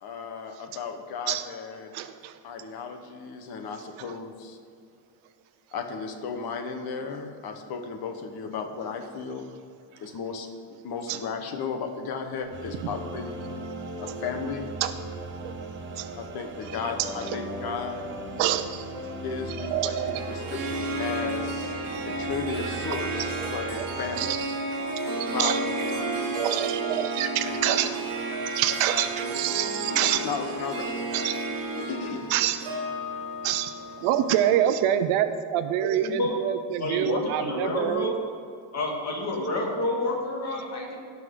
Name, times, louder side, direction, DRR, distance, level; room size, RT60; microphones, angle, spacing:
voice 1, 0.0-1.9 2.4-4.6 5.7-9.6 10.0-13.4 14.0-14.7 16.1-18.0 19.2-21.7 22.1-24.4 25.3-26.3 27.4-27.9 28.9-29.5 29.9-31.1 31.8-32.3, left 5 dB, 50° left, 5 dB, 1.2 m, -35 dB
voice 2, 1.9-2.3 11.1-11.2 12.8-12.9 14.1-14.2 14.8-14.9 15.4-15.5 16.0-16.1 17.0-17.3 18.4-18.9 19.6-20.2 22.0-22.1 23.8-23.9 24.2-24.5 25.4-25.6 26.3-27.9 28.5-30.2 31.1-31.4 32.3-32.6 33.4-38.1, right 11 dB, 85° right, 10 dB, 0.7 m, -26 dB
sound 1, 12.5-20.4, left 2 dB, 10° left, 1.2 m, -40 dB
sound 2, 12.5-24.4, right 5 dB, 25° right, 0.7 m, -40 dB
Harp, 20.1-34.6, right 2 dB, 60° right, 2.5 m, -32 dB
voice 3, 36.0-36.4 36.8-38.2 38.7-41.0, left 2 dB, 35° left, -2 dB, 2.2 m, -29 dB
17.0 x 5.9 x 3.8 m, 2.4 s
cardioid pair, 170°, 48 cm